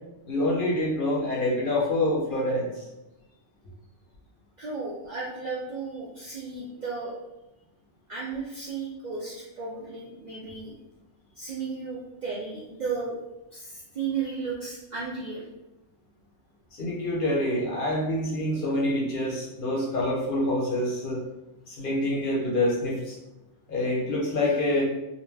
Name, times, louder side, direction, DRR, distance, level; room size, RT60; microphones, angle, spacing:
voice 1, 0.3-2.8 16.8-21.2 21.7-23.1 23.7-24.8, left 1 dB, 55° left, -4 dB, 0.7 m, -26 dB
voice 2, 4.6-7.1 8.1-10.7 11.4-13.2 13.5-15.4, right 4 dB, 60° right, -6 dB, 0.4 m, -34 dB
2.4 x 2.2 x 3.2 m, 0.96 s
omnidirectional pair, 1.2 m